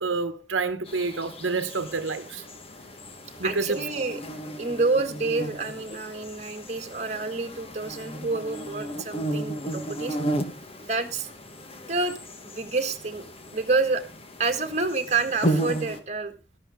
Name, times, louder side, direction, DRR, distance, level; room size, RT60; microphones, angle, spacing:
voice 1, 0.0-2.4 3.4-3.8, right 4 dB, 90° right, 1.1 m, -28 dB
sound 1, 0.9-16.0, right 1 dB, 30° left, 1.4 m, -34 dB
voice 2, 3.4-4.2 4.6-10.2 10.8-11.3 11.9-12.2 12.4-13.2 13.5-14.0 14.4-16.3, right 3 dB, 35° right, 1.7 m, -28 dB
13.5 x 11.5 x 3.6 m
head